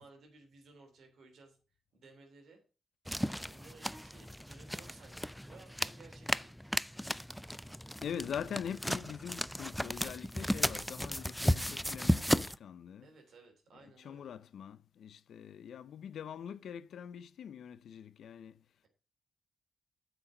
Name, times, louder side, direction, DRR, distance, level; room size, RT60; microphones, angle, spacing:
voice 1, 0.0-1.6 1.9-2.6 3.3-6.7 13.0-14.3, right 3 dB, 75° right, 3.2 m, -58 dB
sound 1, 3.1-12.6, equal, ahead, 0.4 m, -35 dB
voice 2, 8.0-13.1 13.7-18.5, left 8 dB, 80° left, 0.6 m, -43 dB
7.9 x 6.2 x 6.2 m
cardioid pair, 65°, 0 cm